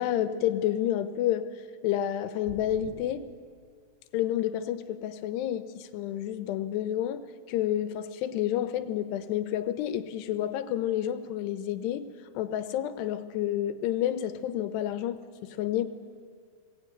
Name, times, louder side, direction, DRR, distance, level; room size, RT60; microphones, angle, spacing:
voice 1, 0.0-1.5 1.8-3.3 4.1-12.1 12.4-15.8, left 11 dB, 90° left, 10 dB, 3.1 m, -30 dB
sound 1, 2.4-2.9, equal, 60° right, 7.9 m, -44 dB
21.5 x 20.0 x 9.3 m, 2.2 s
omnidirectional pair, 4.7 m